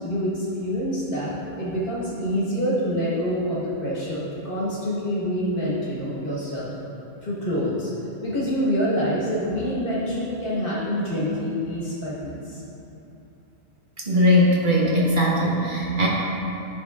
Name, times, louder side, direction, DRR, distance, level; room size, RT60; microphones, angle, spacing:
voice 1, 0.0-6.7 7.2-7.9 8.2-12.6, equal, 35° left, -7 dB, 1.5 m, -26 dB
voice 2, 14.1-16.1, left 1 dB, 45° right, -4 dB, 0.7 m, -19 dB
10.0 x 3.8 x 2.5 m, 2.8 s
omnidirectional pair, 1.6 m